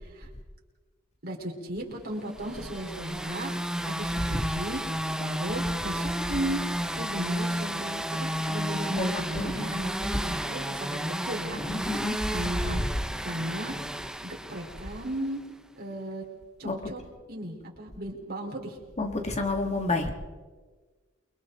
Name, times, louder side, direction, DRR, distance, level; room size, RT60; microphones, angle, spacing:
voice 1, 1.2-4.8 5.2-6.6 6.9-12.8 13.2-13.7 14.2-15.4 15.8-16.2 16.6-17.0 17.3-18.8, right 1 dB, 50° right, 0 dB, 4.3 m, -36 dB
sound 1, 2.4-15.3, equal, 5° right, 0.8 m, -32 dB
voice 2, 9.0-9.7 11.6-12.2 16.6-16.8 19.0-20.1, left 2 dB, 35° left, 4 dB, 2.2 m, -30 dB
29.0 x 23.0 x 4.0 m, 1.4 s
head